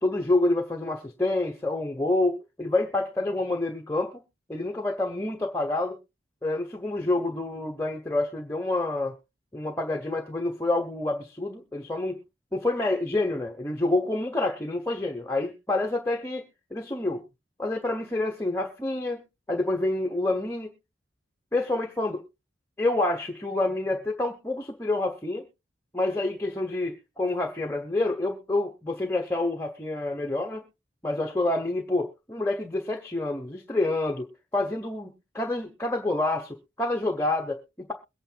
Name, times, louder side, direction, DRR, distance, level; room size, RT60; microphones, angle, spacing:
voice 1, 0.0-4.2 4.5-6.0 6.4-9.2 9.5-12.2 12.5-16.4 16.7-17.2 17.6-19.2 19.5-20.7 21.5-22.2 22.8-25.5 25.9-30.6 31.0-34.3 34.5-37.9, left 2 dB, 10° left, 1.0 m, -28 dB
22.5 x 8.9 x 2.3 m
head